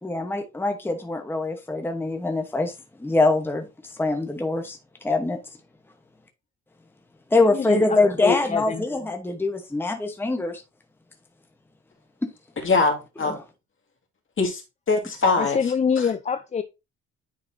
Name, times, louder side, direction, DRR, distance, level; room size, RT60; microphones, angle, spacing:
voice 1, 0.0-2.7 3.0-3.6 4.0-4.8 5.0-5.4 7.3-10.6, left 2 dB, 5° left, 1.0 m, -23 dB
voice 2, 7.4-8.8 15.4-16.6, left 6 dB, 25° left, 0.4 m, -25 dB
voice 3, 12.6-13.4 14.4-14.6 14.9-16.1, left 3 dB, 40° left, 2.1 m, -23 dB
9.8 x 4.0 x 2.7 m
cardioid pair, 90°, 30 cm